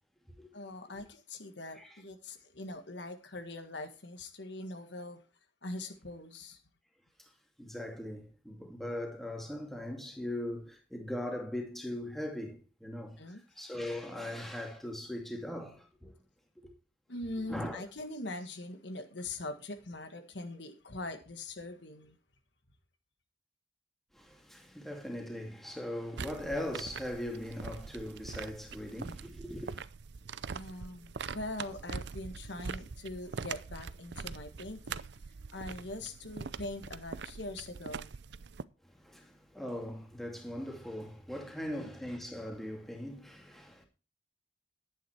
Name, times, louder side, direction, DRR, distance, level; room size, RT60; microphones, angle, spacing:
voice 1, 0.5-5.2 5.6-6.6 13.2-13.4 17.1-22.2 30.5-35.1 35.5-38.1 41.6-41.9, left 2 dB, 65° left, 1.7 m, -42 dB
voice 2, 7.6-16.2 16.6-16.7 17.5-17.8 24.1-29.8 38.8-43.9, left 1 dB, ahead, 2.4 m, -40 dB
sound 1, 26.2-38.6, right 5 dB, 60° right, 0.5 m, -43 dB
11.5 x 9.2 x 4.5 m
head